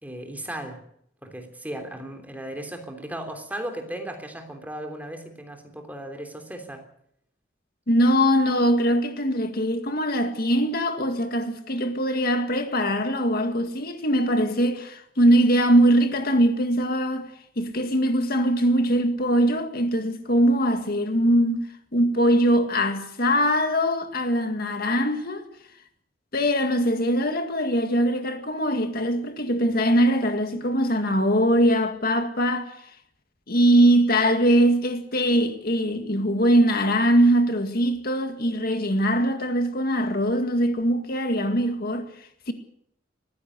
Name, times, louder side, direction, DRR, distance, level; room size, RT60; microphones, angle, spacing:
voice 1, 0.0-0.8 1.2-6.8, right 1 dB, 10° right, 3.4 m, -36 dB
voice 2, 7.9-17.3 17.6-25.5 26.3-32.9 33.5-42.5, equal, 50° left, 2.1 m, -22 dB
20.5 x 15.5 x 8.3 m
head